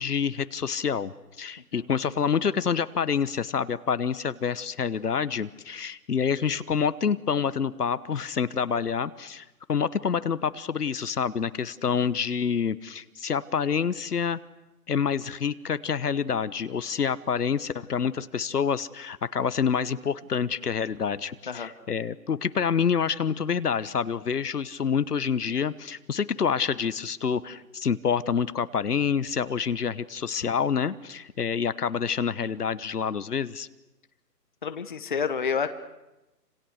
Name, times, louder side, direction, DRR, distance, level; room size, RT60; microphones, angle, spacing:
voice 1, 0.0-14.4 14.9-33.7, left 6 dB, 65° left, 15 dB, 1.2 m, -27 dB
voice 2, 34.6-35.7, left 6 dB, 30° left, 10 dB, 1.0 m, -29 dB
28.5 x 26.5 x 6.5 m, 0.98 s
hypercardioid pair, 165°, 50 cm